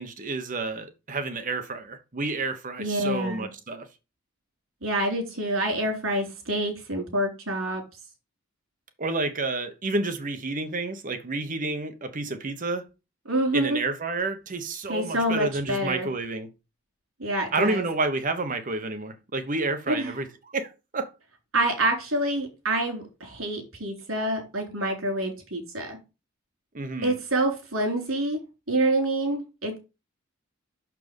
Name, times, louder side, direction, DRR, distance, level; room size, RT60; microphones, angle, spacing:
voice 1, 0.0-3.9 9.0-12.9 13.5-16.5 17.5-21.1 26.7-27.1, right 3 dB, 40° right, 1.0 m, -30 dB
voice 2, 2.8-3.5 4.8-7.8 13.3-13.8 14.9-16.1 17.2-17.8 19.9-20.2 21.5-26.0 27.0-28.4 28.7-29.8, right 1 dB, 90° right, 3.6 m, -27 dB
6.5 x 6.0 x 5.3 m
head